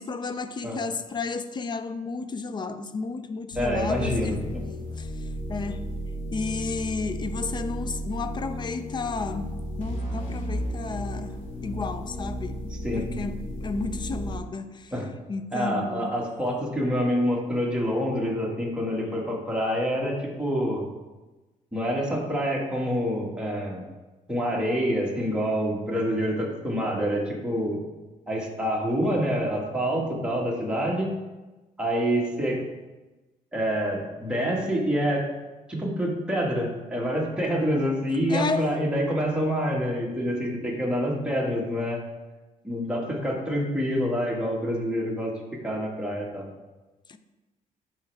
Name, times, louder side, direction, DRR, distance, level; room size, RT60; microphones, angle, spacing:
voice 1, 0.0-4.4 4.9-5.1 5.5-5.8 6.3-11.3 11.6-14.9 15.3-16.2 38.3-38.7 47.1-47.2, left 4 dB, 30° left, 0.5 m, -32 dB
sound 1, 3.5-14.4, equal, 65° left, 2.5 m, -34 dB
voice 2, 3.6-4.4 12.7-13.1 14.9-15.1 15.5-20.8 21.7-23.9 24.3-27.8 28.3-31.1 31.8-32.6 33.5-35.2 35.7-42.0 42.6-45.3 45.6-46.4, equal, 5° right, 1.8 m, -27 dB
10.5 x 4.6 x 3.4 m
cardioid pair, 110°, 15 cm